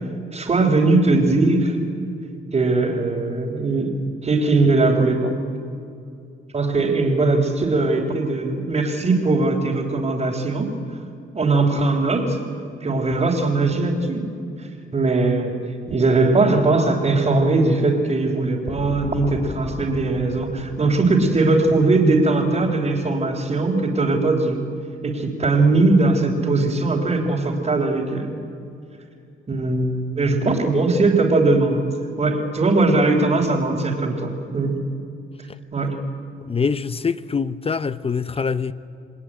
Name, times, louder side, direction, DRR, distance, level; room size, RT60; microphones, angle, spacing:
voice 1, 0.3-1.8 2.5-4.0 4.2-5.4 6.5-10.7 11.3-12.4 12.8-14.2 14.6-15.6 15.9-24.6 25.0-28.3 29.5-31.8 32.2-34.8 35.7-36.0, right 3 dB, 30° right, 3.4 m, -20 dB
sound 1, 18.7-22.9 23.2-23.3, left 2 dB, 55° left, 8.0 m, -38 dB
voice 2, 36.4-38.7, left 5 dB, 30° left, 0.8 m, -24 dB
27.5 x 19.5 x 9.9 m
cardioid pair, 90°, 20 cm